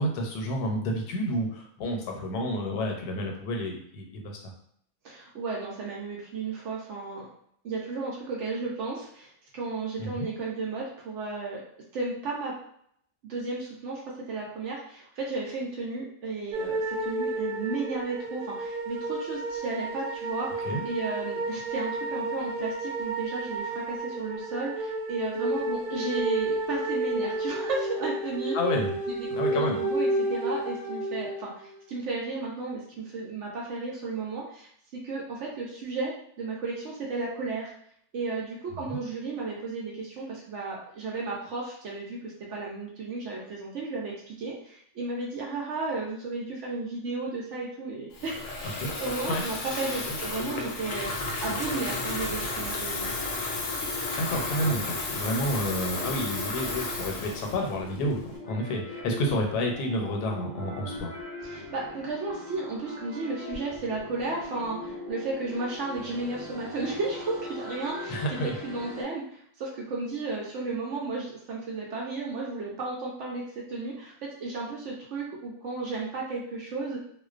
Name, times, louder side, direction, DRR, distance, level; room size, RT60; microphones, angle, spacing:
voice 1, 0.0-4.5 10.0-10.3 20.6-20.8 28.5-29.0 29.3-29.8 38.9-39.0 48.8-48.9 49.2-49.4 50.0-50.1 54.2-61.1 68.1-68.5, equal, 85° left, 2 dB, 1.1 m, -30 dB
voice 2, 5.0-7.3 7.6-12.5 13.2-14.0 14.3-28.6 29.2-36.1 36.4-37.7 38.1-51.1 51.4-53.1 61.4-68.2 68.4-77.0, right 3 dB, 70° right, -3 dB, 0.7 m, -34 dB
sound 1, 16.5-31.6, right 2 dB, 90° right, 1.1 m, -31 dB
Water tap faucet / Fill (with liquid), 48.1-58.4, left 3 dB, 70° left, 0.9 m, -33 dB
sound 2, 51.2-69.0, left 2 dB, 20° left, 0.7 m, -41 dB
2.4 x 2.2 x 2.4 m, 0.68 s
omnidirectional pair, 1.6 m